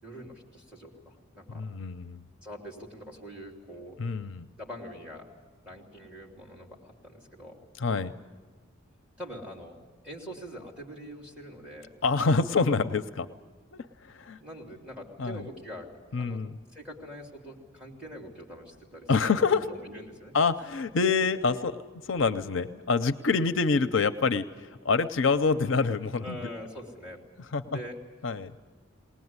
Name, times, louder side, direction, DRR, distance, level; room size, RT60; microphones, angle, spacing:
voice 1, 0.0-1.6 2.4-4.1 4.6-5.3 5.6-7.6 9.2-9.8 10.0-11.9 14.4-16.4 16.7-19.3 19.7-20.3 26.2-27.2 27.7-28.0, equal, 5° right, 0 dB, 3.3 m, -44 dB
voice 2, 1.5-2.2 4.0-4.5 7.8-8.1 12.0-13.3 13.7-14.4 15.2-15.4 16.1-16.5 19.1-19.7 20.3-21.8 22.1-24.5 24.8-26.4 27.5-27.8 28.2-28.5, left 4 dB, 65° left, 11 dB, 0.6 m, -26 dB
20.0 x 20.0 x 9.6 m, 1.4 s
head